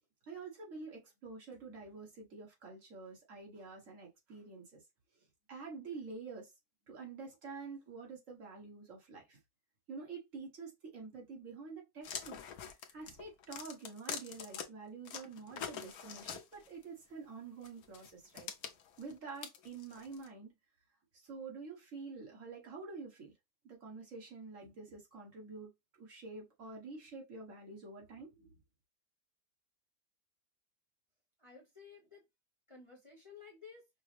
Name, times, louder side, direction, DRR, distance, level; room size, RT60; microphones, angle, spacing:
voice 1, 0.3-4.8 5.5-6.5 6.9-9.4 9.9-12.4 12.7-18.5 19.0-20.5 21.1-23.3 23.6-25.7 26.0-28.5, right 4 dB, 60° right, 1.6 m, -48 dB
sound 1, 12.0-14.6 15.1-16.8 17.6-20.3, left 7 dB, 90° left, 1.2 m, -45 dB
voice 2, 31.4-32.3 32.7-33.9, left 5 dB, 25° left, 1.0 m, -55 dB
5.4 x 2.0 x 3.2 m
omnidirectional pair, 1.5 m